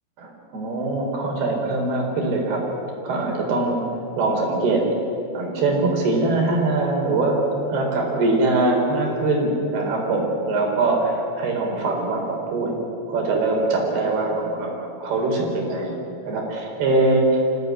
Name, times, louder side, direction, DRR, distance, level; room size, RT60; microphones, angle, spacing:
voice 1, 0.2-2.6 3.0-3.8 4.2-4.8 5.3-7.4 7.7-12.7 13.1-16.0 16.3-17.5, right 2 dB, 75° right, 0 dB, 6.2 m, -22 dB
25.5 x 16.5 x 9.6 m, 2.8 s
omnidirectional pair, 4.6 m